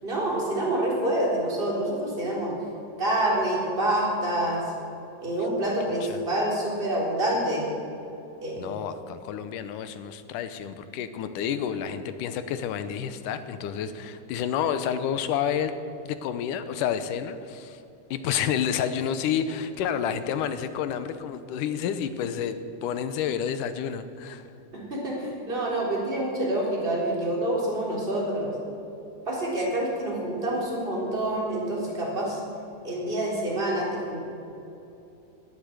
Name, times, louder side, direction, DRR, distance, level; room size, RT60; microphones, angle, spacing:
voice 1, 0.0-2.5 3.0-4.6 5.2-7.7 8.4-8.7 24.7-28.5 29.3-32.4 32.8-34.2, right 1 dB, 15° right, -4 dB, 4.0 m, -27 dB
voice 2, 8.6-15.8 16.0-17.8 18.1-24.5, left 8 dB, 85° left, 11 dB, 2.4 m, -29 dB
21.0 x 8.5 x 7.8 m, 2.8 s
omnidirectional pair, 3.7 m